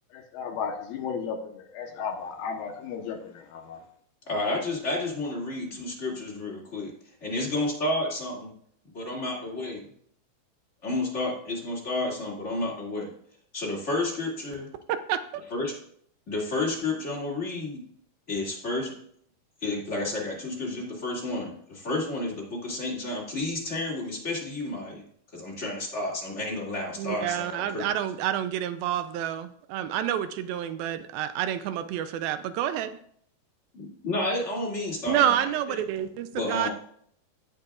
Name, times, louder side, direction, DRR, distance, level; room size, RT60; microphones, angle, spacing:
voice 1, 0.3-3.8, left 6 dB, 80° left, 4 dB, 2.9 m, -34 dB
voice 2, 4.3-6.9 7.2-8.5 8.9-9.8 10.8-13.1 13.5-14.7 15.5-15.7 16.3-17.8 18.3-18.9 19.6-25.0 25.3-27.9 33.7-35.8 36.3-36.7, left 2 dB, 25° left, -4 dB, 2.1 m, -31 dB
voice 3, 14.9-15.4 27.0-32.9 35.1-36.7, right 10 dB, 90° right, 11 dB, 2.5 m, -28 dB
17.5 x 6.7 x 2.4 m, 0.64 s
omnidirectional pair, 4.2 m